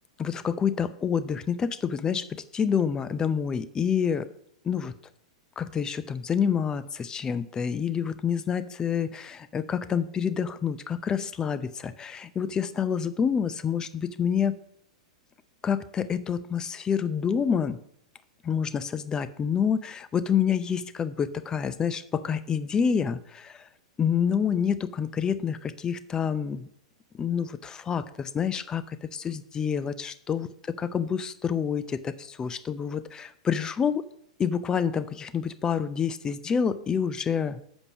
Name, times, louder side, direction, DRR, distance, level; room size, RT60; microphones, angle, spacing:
voice 1, 0.2-4.3 4.6-4.9 5.6-14.6 15.6-17.8 18.4-23.7 24.0-26.7 27.1-34.1 34.4-37.6, left 7 dB, 20° left, 13 dB, 0.5 m, -28 dB
7.1 x 5.2 x 6.1 m, 0.68 s
hypercardioid pair, 110°, 3 cm